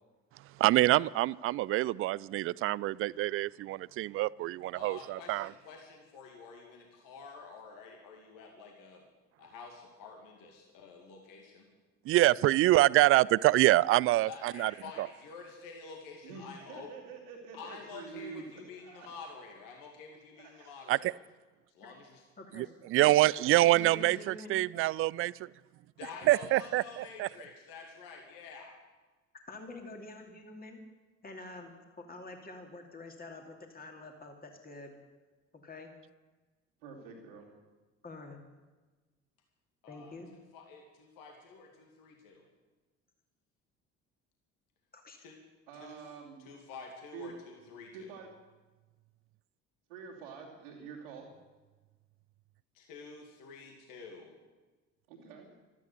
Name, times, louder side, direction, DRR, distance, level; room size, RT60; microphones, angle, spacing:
voice 1, 0.6-5.5 12.1-14.7 15.0-15.1 20.9-21.1 22.5-25.5 26.3-27.3, right 17 dB, 35° right, 23 dB, 0.4 m, -26 dB
voice 2, 4.7-9.0 9.4-11.7 14.2-16.9 17.5-21.2 21.7-22.2 23.1-23.3 23.6-24.2 26.0-28.8 39.8-42.5 45.2-45.4 45.7-46.0 46.4-48.1 52.7-54.3, left 4 dB, 60° left, 1 dB, 2.4 m, -49 dB
voice 3, 16.2-19.1 20.4-20.7 36.8-37.5 45.7-46.5 47.1-47.3 47.9-48.3 49.9-51.3 55.1-55.5, right 5 dB, 75° right, -7 dB, 2.8 m, -47 dB
voice 4, 22.4-22.8 23.7-24.5 29.5-30.8 31.2-35.0 35.5-35.9 38.0-38.4 39.9-40.3 44.9-45.2, left 2 dB, 25° left, 3 dB, 2.7 m, -47 dB
16.0 x 13.0 x 6.7 m, 1.3 s
figure-of-eight pair, 50°, 38 cm